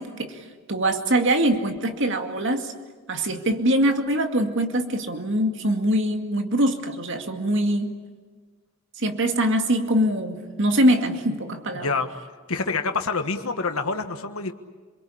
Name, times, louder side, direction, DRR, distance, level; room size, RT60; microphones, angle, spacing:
voice 1, 0.0-2.7 3.1-7.9 9.0-11.9, right 1 dB, 60° right, 5 dB, 2.2 m, -23 dB
voice 2, 11.7-12.1 12.5-14.5, left 4 dB, 80° left, 7 dB, 1.5 m, -26 dB
27.5 x 22.5 x 8.6 m, 1.4 s
head